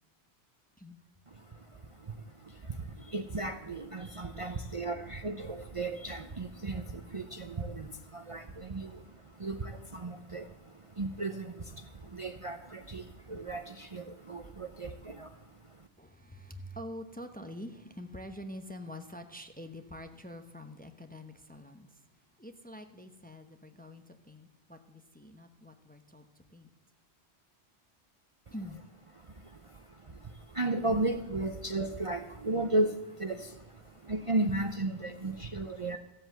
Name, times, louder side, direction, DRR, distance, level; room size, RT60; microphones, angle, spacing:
voice 1, 1.3-15.9 28.5-28.6 29.2-36.0, right 2 dB, 35° right, 6 dB, 0.7 m, -35 dB
voice 2, 16.0-26.7 28.5-28.8 33.8-34.0 35.7-35.8, left 1 dB, 10° left, 6 dB, 0.8 m, -46 dB
15.0 x 7.9 x 7.7 m, 0.90 s
omnidirectional pair, 1.1 m